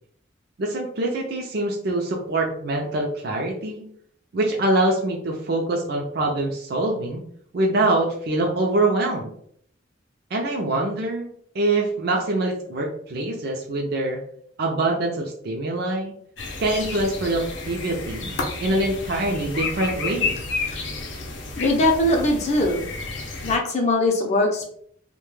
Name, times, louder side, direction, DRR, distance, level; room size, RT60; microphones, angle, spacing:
voice 1, 0.6-3.9 4.3-7.2 7.5-9.3 10.3-14.2 14.6-16.1 16.6-18.3 18.6-20.5, right 2 dB, 55° right, 0 dB, 0.4 m, -24 dB
sound 1, 16.4-23.6, left 3 dB, 80° left, 0.6 m, -31 dB
voice 2, 21.6-22.8 23.4-24.7, left 2 dB, 35° left, 0 dB, 0.5 m, -21 dB
2.2 x 2.1 x 3.0 m, 0.64 s
head